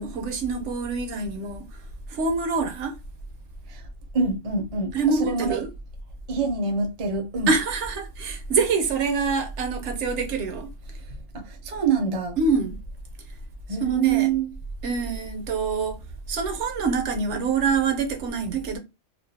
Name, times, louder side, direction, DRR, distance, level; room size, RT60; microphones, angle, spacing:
voice 1, 0.0-1.6 2.1-2.9 4.9-5.7 7.5-10.7 12.4-12.8 13.8-14.3 14.8-16.0 16.3-18.8, right 4 dB, 70° right, 0.9 m, -25 dB
voice 2, 4.1-5.6 6.3-7.5 11.3-12.4 13.7-14.5, right 5 dB, 40° right, 0.5 m, -25 dB
2.5 x 2.2 x 2.7 m
omnidirectional pair, 1.3 m